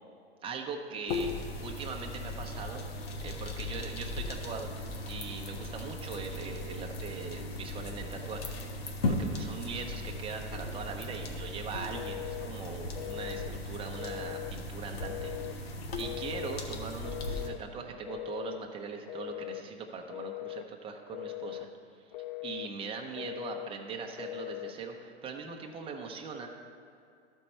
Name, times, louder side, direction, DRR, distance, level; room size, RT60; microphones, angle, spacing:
voice 1, 0.4-1.3 1.6-2.8 3.2-4.7 5.1-21.7 22.4-26.5, right 5 dB, 15° right, 2 dB, 0.8 m, -41 dB
sound 1, 1.1-17.5, left 2 dB, 65° left, 1.2 m, -37 dB
Telephone, 11.9-12.5 13.0-13.5 14.0-14.6 15.0-15.6 16.0-16.6 17.0-17.6 18.1-18.6 19.1-19.7 20.1-20.7 21.1-21.7 22.1-22.7 23.2-23.7 24.2-24.8, left 19 dB, 50° left, 0.4 m, -40 dB
13.5 x 4.5 x 4.4 m, 2.5 s
figure-of-eight pair, 95°, 32 cm